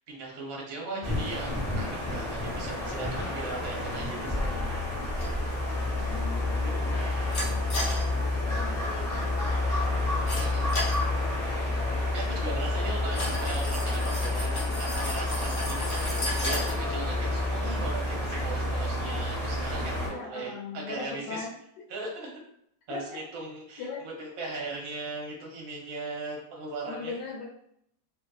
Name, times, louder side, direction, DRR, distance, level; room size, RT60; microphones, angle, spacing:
voice 1, 0.1-1.5 1.8-4.7 6.6-7.0 10.4-10.8 12.1-21.5 21.9-22.3 22.9-27.1, right 3 dB, 60° right, -1 dB, 1.1 m, -38 dB
voice 2, 0.9-1.4 2.4-3.3 6.0-6.7 7.0-8.0 8.4-11.2 20.1-21.6 22.9-23.2 23.8-24.1 26.9-27.5, left 4 dB, 80° left, -2 dB, 1.2 m, -41 dB
sound 1, 1.0-20.1, left 2 dB, 5° left, 0.7 m, -29 dB
sound 2, 5.2-18.5, left 1 dB, 50° left, 0.6 m, -38 dB
2.9 x 2.5 x 2.2 m, 0.72 s
omnidirectional pair, 1.8 m